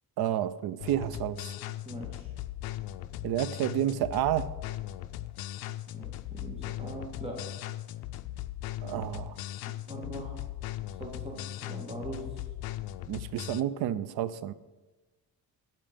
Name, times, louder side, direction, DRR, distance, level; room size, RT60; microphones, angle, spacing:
voice 1, 0.2-1.5 3.2-4.5 8.8-9.3 13.1-14.5, right 11 dB, 85° right, 16 dB, 0.6 m, -30 dB
sound 1, 0.8-13.6, left 13 dB, 70° left, 0.5 m, -39 dB
voice 2, 1.8-2.3 5.9-7.4 8.9-9.1 9.9-10.5 11.0-12.4, right 1 dB, 15° right, -1 dB, 1.5 m, -41 dB
8.1 x 7.5 x 5.1 m, 1.2 s
cardioid pair, 150°, 37 cm